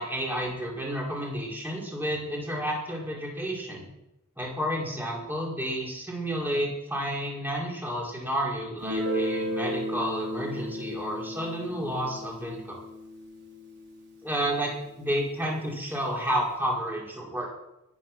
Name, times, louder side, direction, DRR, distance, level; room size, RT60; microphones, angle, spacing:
voice 1, 0.0-3.9 4.4-12.8 14.2-17.5, equal, 10° right, -2 dB, 4.8 m, -31 dB
Guitar, 8.8-14.3, equal, 55° right, 4.3 m, -34 dB
21.5 x 9.5 x 6.1 m, 0.89 s
head